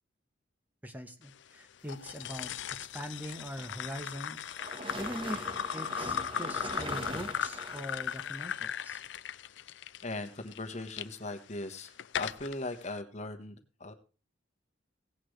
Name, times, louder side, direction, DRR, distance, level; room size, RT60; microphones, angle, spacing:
voice 1, 0.8-4.5 5.0-9.0, equal, 10° right, 7 dB, 1.0 m, -42 dB
sound 1, 1.9-11.1 11.6-12.6, left 8 dB, 70° left, 0.5 m, -37 dB
sound 2, 3.3-8.4, right 1 dB, 30° right, 1.3 m, -42 dB
voice 2, 10.0-13.9, left 2 dB, 40° left, 7 dB, 1.3 m, -39 dB
17.0 x 8.5 x 3.2 m, 0.34 s
head